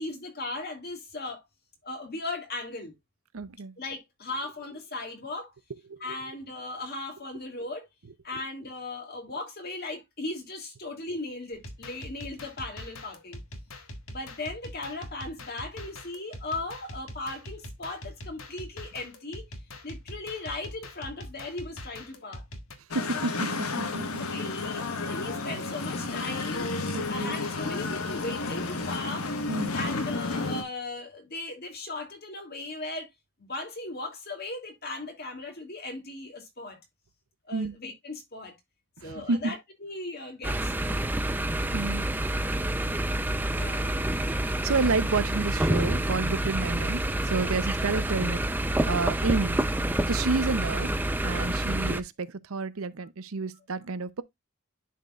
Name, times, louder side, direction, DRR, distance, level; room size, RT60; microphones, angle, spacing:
voice 1, 0.0-1.4 1.8-2.9 3.8-5.5 6.0-7.9 8.2-13.4 14.1-19.5 19.8-22.4 24.2-29.3 29.7-33.1 33.4-36.8 37.4-38.5 39.0-41.0 43.5-44.1 47.4-47.5, left 2 dB, 45° left, 2.5 m, -37 dB
voice 2, 3.3-3.7 5.9-6.2 22.9-24.3 26.9-27.4 29.5-29.7 37.5-37.8 39.0-39.5 41.7-42.1 44.6-49.6 50.1-54.2, right 4 dB, 75° right, 0.7 m, -30 dB
sound 1, 11.5-22.7, left 1 dB, 70° left, 1.6 m, -43 dB
sound 2, 22.9-30.6, left 3 dB, 90° left, 1.3 m, -32 dB
sound 3, 40.4-52.0, right 1 dB, 10° right, 0.5 m, -28 dB
11.0 x 4.4 x 2.3 m
head